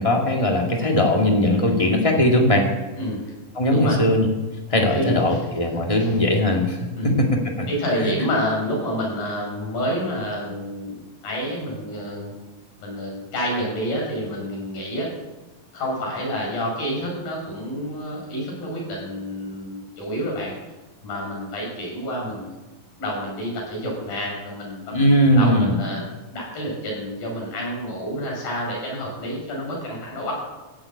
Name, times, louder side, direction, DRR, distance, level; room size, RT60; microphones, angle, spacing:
voice 1, 0.0-2.6 3.5-4.2 4.7-7.3 7.6-7.7 8.0-8.1 24.9-25.8, left 1 dB, 15° left, 1 dB, 1.2 m, -19 dB
voice 2, 4.9-5.4 6.0-6.1 7.0-7.2 7.7-11.0 11.2-12.3 12.8-15.1 15.7-20.6 21.0-22.5 23.0-24.9 25.3-26.0 26.3-30.4, equal, 90° left, -2 dB, 7.0 m, -28 dB
16.0 x 7.6 x 8.6 m, 1.1 s
omnidirectional pair, 4.0 m